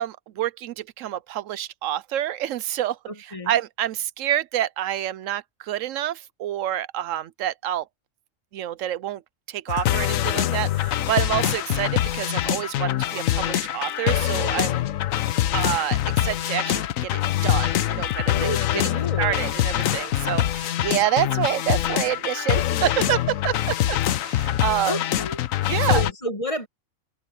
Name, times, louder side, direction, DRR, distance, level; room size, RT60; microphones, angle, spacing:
voice 1, 0.0-3.0 3.3-7.9 8.5-9.2 9.5-14.8 15.5-18.4 19.2-25.0 25.7-26.0, right 12 dB, 80° right, 0.9 m, -27 dB
voice 2, 3.1-3.6 18.4-19.6 24.8-25.4 25.9-26.7, equal, 25° left, 1.5 m, -30 dB
sound 1, 9.7-26.1, left 12 dB, 90° left, 1.1 m, -24 dB
omnidirectional pair, 1.4 m